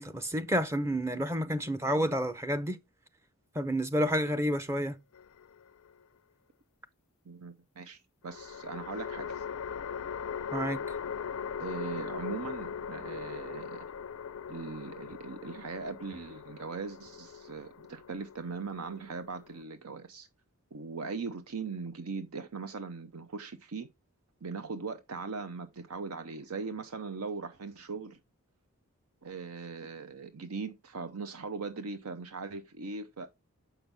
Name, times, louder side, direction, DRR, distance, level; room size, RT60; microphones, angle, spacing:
voice 1, 0.0-2.8 3.5-5.0 10.5-10.8, equal, 10° right, 0.6 m, -30 dB
sound 1, 5.1-6.0 8.3-19.6, left 7 dB, 70° left, 0.4 m, -40 dB
voice 2, 7.3-9.5 11.6-13.8 14.5-20.3 20.7-23.9 24.4-28.2 29.2-33.3, right 4 dB, 80° right, 0.7 m, -40 dB
7.0 x 5.7 x 3.4 m
head